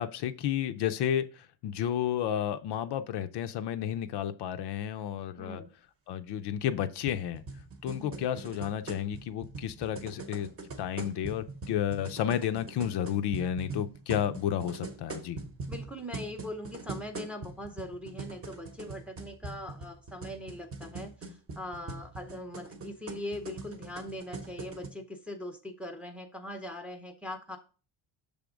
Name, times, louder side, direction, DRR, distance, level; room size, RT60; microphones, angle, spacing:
voice 1, 0.0-5.6 6.1-7.4 7.8-10.5 10.8-15.4, left 10 dB, 60° left, 9 dB, 0.5 m, -31 dB
voice 2, 5.4-5.7 8.0-8.3 15.7-27.6, left 1 dB, 5° right, 4 dB, 0.6 m, -41 dB
sound 1, 7.1-24.9, right 3 dB, 30° right, 0.9 m, -42 dB
6.8 x 3.5 x 5.0 m, 0.36 s
cardioid pair, 160°, 47 cm